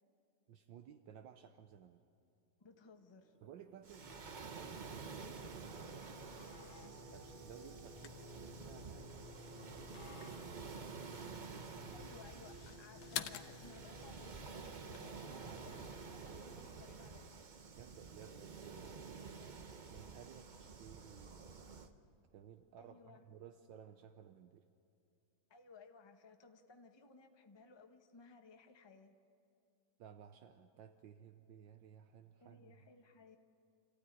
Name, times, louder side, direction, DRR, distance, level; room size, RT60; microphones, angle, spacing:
voice 1, 0.5-2.0 3.4-6.1 7.1-11.2 11.6-12.0 15.3-15.9 16.2-16.6 17.8-21.5 22.3-24.7 30.0-32.9, right 9 dB, 75° right, 7 dB, 1.4 m, -58 dB
voice 2, 2.6-3.4 11.9-17.3 22.8-23.2 25.5-29.2 32.4-33.4, left 4 dB, 20° left, 5 dB, 0.8 m, -60 dB
Singing, 2.7-16.6, right 3 dB, 35° right, 1.4 m, -59 dB
Waves surf, 3.8-21.9, right 5 dB, 55° right, 0.5 m, -50 dB
sound 1, 4.0-16.0, left 10 dB, 85° left, 1.6 m, -52 dB
27.0 x 15.0 x 9.4 m, 2.6 s
omnidirectional pair, 2.1 m